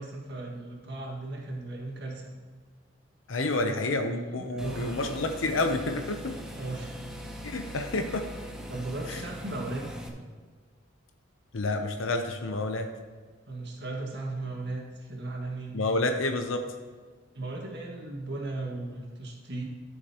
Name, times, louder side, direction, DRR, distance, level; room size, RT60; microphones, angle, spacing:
voice 1, 0.0-2.3 3.5-5.0 6.6-6.9 8.7-9.8 10.1-10.3 13.5-15.8 17.3-19.6, right 2 dB, 55° right, -1 dB, 1.8 m, -36 dB
voice 2, 3.3-6.3 7.4-8.3 9.1-9.2 11.5-12.9 15.7-16.7, left 2 dB, 70° left, 6 dB, 0.7 m, -29 dB
sound 1, 4.6-10.1, equal, 5° right, 0.8 m, -41 dB
13.0 x 6.6 x 2.9 m, 1.5 s
head